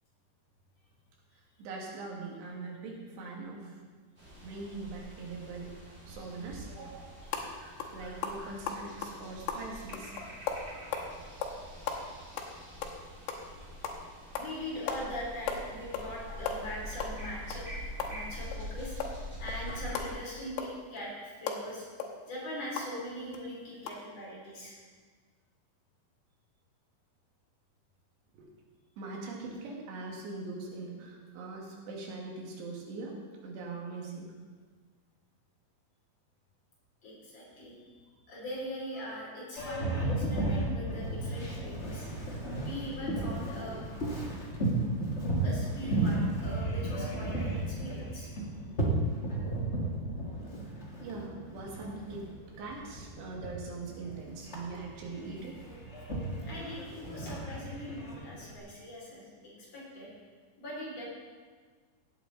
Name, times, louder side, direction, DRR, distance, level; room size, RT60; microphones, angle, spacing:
voice 1, 1.4-3.8 4.4-7.3 7.9-10.1 16.3-16.4 28.3-28.5 29.0-34.3 39.2-39.3 51.0-52.3 52.6-55.6, right 3 dB, 90° right, -2 dB, 4.0 m, -42 dB
sound 1, 4.2-20.1, equal, 20° right, 2.0 m, -45 dB
sound 2, 7.3-7.5 7.8-7.9 8.2-11.1 11.4-11.6 11.9-13.5 13.8-14.0 14.3-14.5 14.9-15.0 15.3-16.1 16.4-18.6 19.0-22.9 23.3-23.4 23.8-23.9, left 6 dB, 90° left, 3.1 m, -37 dB
voice 2, 14.3-17.7 18.1-19.0 19.4-21.9 22.2-24.8 37.0-38.0 38.3-42.1 42.6-43.9 45.4-48.3 56.5-60.1 60.6-61.1, left 1 dB, 40° left, -5 dB, 3.9 m, -41 dB
Boat Water vehicle, 39.5-58.6, right 2 dB, 65° left, 0.6 m, -34 dB
17.0 x 8.1 x 4.0 m, 1.5 s
omnidirectional pair, 4.7 m